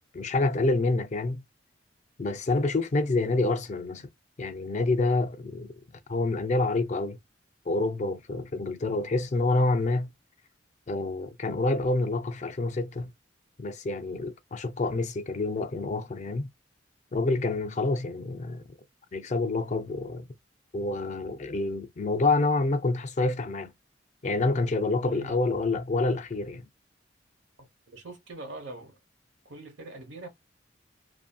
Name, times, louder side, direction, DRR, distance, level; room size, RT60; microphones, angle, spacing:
voice 1, 0.1-1.4 2.2-4.1 4.4-5.7 6.1-7.2 7.7-10.1 10.9-13.1 13.6-16.5 17.1-18.6 19.1-20.3 20.7-23.7 24.2-26.6, left 2 dB, 40° left, 0.4 m, -27 dB
voice 2, 25.0-25.4 27.6-29.0 29.4-30.3, right 2 dB, 75° right, 1.1 m, -43 dB
2.7 x 2.6 x 2.2 m
head